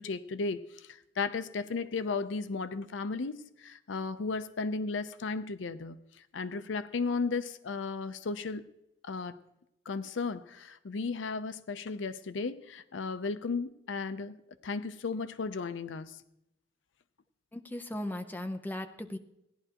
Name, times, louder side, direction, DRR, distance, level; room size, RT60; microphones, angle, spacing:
voice 1, 0.0-6.0 6.3-8.6 9.0-9.4 9.9-14.4 14.6-16.2, left 4 dB, 75° left, 13 dB, 0.5 m, -35 dB
voice 2, 17.5-19.2, left 1 dB, 10° left, 6 dB, 0.6 m, -37 dB
17.0 x 11.0 x 2.9 m, 0.82 s
head